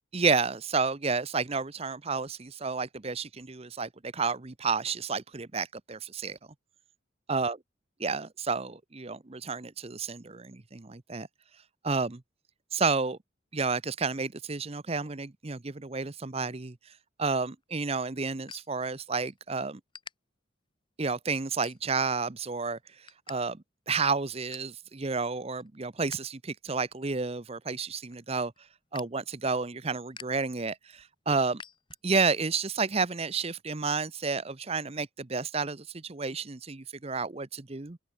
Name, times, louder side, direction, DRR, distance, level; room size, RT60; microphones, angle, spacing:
voice 1, 0.1-6.4 7.3-7.6 8.0-11.3 11.8-12.2 12.7-13.2 13.5-16.8 17.2-19.8 21.0-22.8 23.3-28.5 28.9-31.6 32.0-38.0, right 4 dB, 30° right, 0.7 m, -31 dB
sound 1, 17.4-19.4 19.7-20.1 20.7-20.9 21.5-22.2 22.6-23.4 23.7-23.8 24.1-24.8 25.2-26.2 26.6-32.3, left 6 dB, 25° left, 3.5 m, -51 dB
open air
head